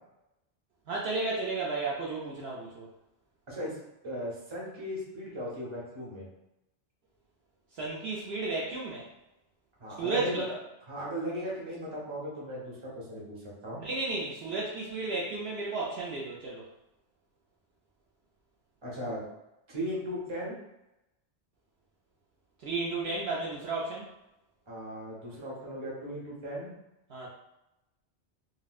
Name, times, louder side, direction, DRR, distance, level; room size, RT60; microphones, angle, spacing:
voice 1, 0.9-2.9 7.7-9.1 10.0-10.5 13.8-16.7 22.6-24.1 27.1-27.3, right 3 dB, 65° right, -5 dB, 0.8 m, -33 dB
voice 2, 4.0-6.3 9.8-10.4 10.9-13.8 18.8-19.2 19.7-20.6 24.7-26.7, equal, 25° right, -5 dB, 0.9 m, -37 dB
4.1 x 2.1 x 2.3 m, 0.92 s
omnidirectional pair, 1.2 m